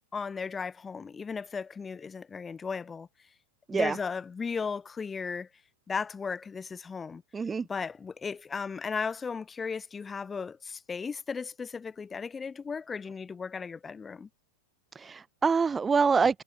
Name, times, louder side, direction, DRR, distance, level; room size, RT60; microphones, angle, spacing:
voice 1, 0.1-3.1 3.7-5.5 5.9-7.2 7.7-14.3, left 5 dB, 15° left, 1.1 m, -36 dB
voice 2, 3.7-4.0 7.3-7.7 14.9-16.4, right 5 dB, 15° right, 0.4 m, -26 dB
figure-of-eight pair, 90°, 0 cm